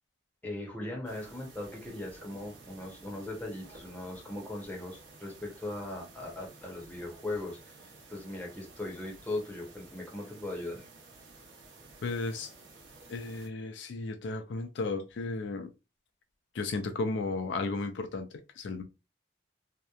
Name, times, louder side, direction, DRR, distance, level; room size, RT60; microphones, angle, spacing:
voice 1, 0.4-10.8, left 2 dB, 10° left, 0.7 m, -39 dB
sound 1, 1.0-13.5, right 3 dB, 80° right, 0.7 m, -53 dB
voice 2, 12.0-12.5 13.1-15.7 16.5-18.3 18.6-18.8, left 3 dB, 80° left, 0.4 m, -34 dB
2.8 x 2.1 x 2.3 m
head